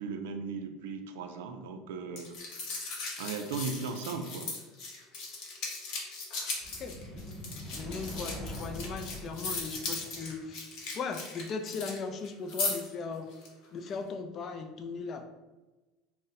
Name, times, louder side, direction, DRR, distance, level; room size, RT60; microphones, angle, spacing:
voice 1, 0.0-2.4 3.2-4.5, right 4 dB, 85° right, 5 dB, 0.3 m, -37 dB
sound 1, 2.2-12.0 12.2-12.9 13.3-13.5, left 3 dB, 55° left, 0.8 m, -38 dB
sound 2, 6.6-10.6, equal, 15° right, 0.7 m, -43 dB
voice 2, 7.7-13.3 13.7-15.2, left 4 dB, 35° left, 6 dB, 0.3 m, -38 dB
2.6 x 2.0 x 3.9 m, 1.1 s
supercardioid pair, 130°, 0 cm